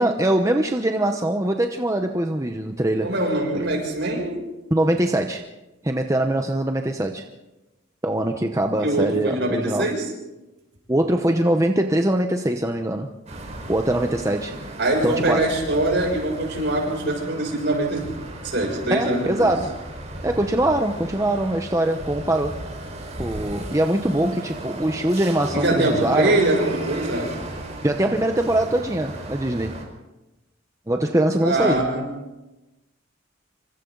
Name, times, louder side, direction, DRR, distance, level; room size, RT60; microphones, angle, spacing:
voice 1, 0.0-3.1 4.7-5.5 5.8-7.2 8.0-9.9 10.9-13.1 13.7-14.5 15.0-15.5 18.9-19.8 20.2-22.6 23.2-26.4 27.8-29.8 30.9-31.8, right 1 dB, 15° right, 4 dB, 0.9 m, -22 dB
voice 2, 3.0-4.4 8.7-10.0 14.8-18.0 18.4-19.5 25.5-27.3 31.4-32.1, right 1 dB, 60° right, 1 dB, 7.1 m, -23 dB
sound 1, 13.3-29.8, right 1 dB, 35° right, 4.9 m, -35 dB
27.0 x 24.5 x 4.0 m, 1.0 s
head